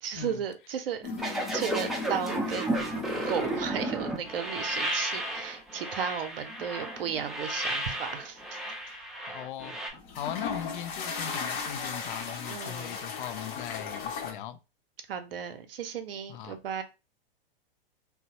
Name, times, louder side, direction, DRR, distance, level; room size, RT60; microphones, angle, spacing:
voice 1, 0.0-8.4 12.5-13.0 15.1-16.8, right 8 dB, 75° right, 0.7 m, -35 dB
sound 1, 1.0-4.2 4.7-5.0 6.5-8.2 8.5-8.9 9.9-14.3, left 5 dB, 40° left, 0.8 m, -37 dB
sound 2, 1.2-9.9, right 1 dB, ahead, 0.5 m, -33 dB
voice 2, 9.3-9.8 10.2-14.6 16.3-16.6, left 10 dB, 60° left, 0.4 m, -39 dB
3.0 x 2.1 x 2.8 m
hypercardioid pair, 110°, 29 cm